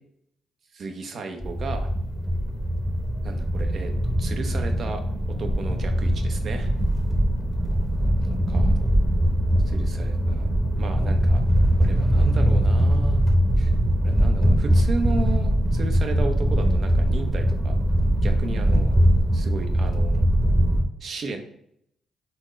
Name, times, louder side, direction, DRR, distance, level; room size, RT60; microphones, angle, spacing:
voice 1, 0.7-1.9 3.2-5.0 5.4-6.7 8.2-8.9 9.7-10.5 10.8-11.4 11.8-13.2 13.6-13.7 14.0-17.7 18.2-18.9 19.3-20.3 21.0-21.4, right 3 dB, 55° right, 5 dB, 0.8 m, -34 dB
sound 1, 1.4-20.8, equal, 10° right, 0.9 m, -21 dB
4.4 x 3.7 x 3.2 m, 0.73 s
cardioid pair, 90°, 0 cm